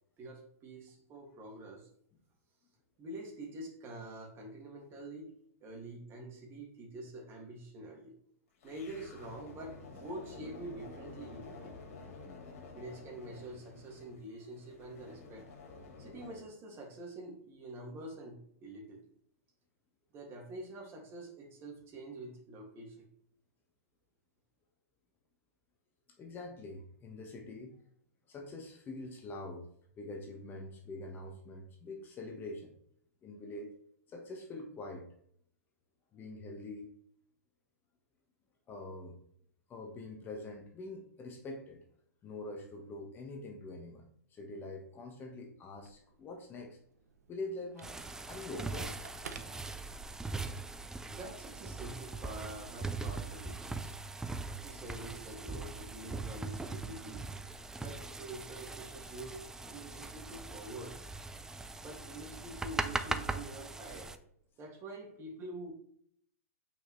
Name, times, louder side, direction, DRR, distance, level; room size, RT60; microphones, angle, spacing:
voice 1, 0.2-1.9 3.0-5.3 5.6-8.1 8.6-11.7 12.7-15.5 16.0-19.0 20.1-23.1 51.0-53.9 54.6-57.3 57.8-61.0 61.8-64.2 64.6-65.7, right 2 dB, 30° right, 1 dB, 2.4 m, -46 dB
sound 1, 8.6-16.4, left 3 dB, 65° left, 2.5 m, -50 dB
voice 2, 26.2-27.8 28.3-29.7 30.0-32.7 33.2-33.7 34.1-35.1 36.1-36.9 38.7-39.2 39.7-41.8 42.2-44.0 44.3-46.8 47.3-49.0, left 2 dB, 25° left, 3 dB, 1.4 m, -44 dB
Telephone, 45.7-50.4, right 5 dB, 80° right, 0.9 m, -54 dB
sound 2, 47.8-64.2, right 3 dB, 5° right, 0.5 m, -41 dB
8.6 x 5.4 x 3.3 m, 0.66 s
hypercardioid pair, 120°, 8 cm